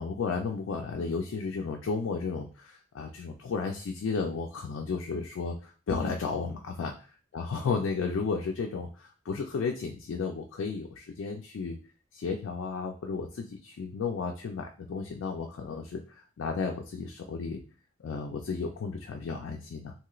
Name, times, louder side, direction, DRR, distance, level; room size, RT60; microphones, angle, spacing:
voice 1, 0.0-6.9 7.3-11.8 12.1-17.6 18.0-19.9, left 4 dB, 85° left, 2 dB, 0.4 m, -33 dB
3.0 x 2.9 x 2.4 m, 0.37 s
head